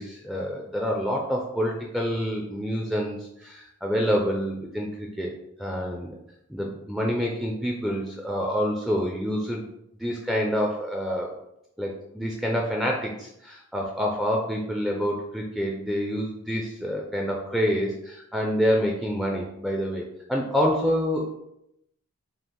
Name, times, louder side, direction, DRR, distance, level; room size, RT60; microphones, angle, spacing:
voice 1, 0.0-5.3 5.6-6.1 6.5-9.7 10.0-11.3 11.8-20.0 20.3-21.4, equal, ahead, -1 dB, 0.3 m, -27 dB
5.3 x 2.4 x 3.7 m, 0.81 s
head